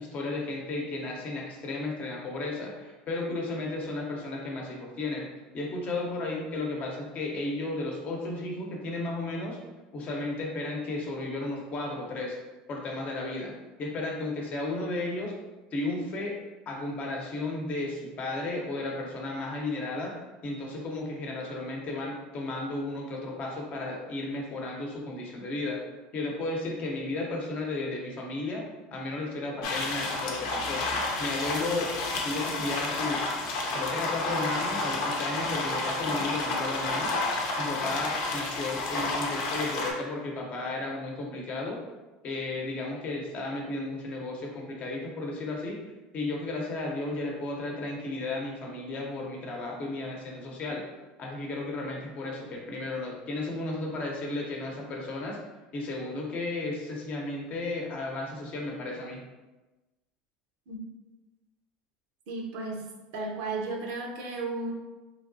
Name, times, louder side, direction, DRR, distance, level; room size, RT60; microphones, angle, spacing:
voice 1, 0.0-5.3 5.5-9.6 9.9-12.4 12.7-15.3 15.7-16.4 16.7-20.1 20.4-25.8 26.1-28.6 28.9-30.9 31.2-31.9 32.2-33.3 33.7-37.1 37.6-41.8 42.2-45.8 46.1-50.8 51.2-55.4 55.7-59.2, left 2 dB, 40° left, -1 dB, 0.7 m, -34 dB
sound 1, 29.6-39.9, left 2 dB, 75° left, 0.6 m, -30 dB
voice 2, 62.3-62.8 63.1-64.7, right 3 dB, 70° right, 0 dB, 0.7 m, -34 dB
3.1 x 2.8 x 2.6 m, 1.1 s
supercardioid pair, 115°, 4 cm